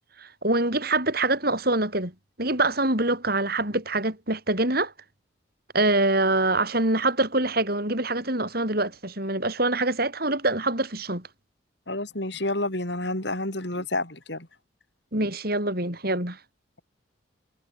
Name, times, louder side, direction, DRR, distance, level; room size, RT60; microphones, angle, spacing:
voice 1, 0.2-2.1 2.4-4.9 5.7-11.2 15.1-16.4, right 2 dB, 50° right, 6.7 m, -25 dB
voice 2, 11.9-14.5, left 2 dB, 60° left, 4.5 m, -29 dB
head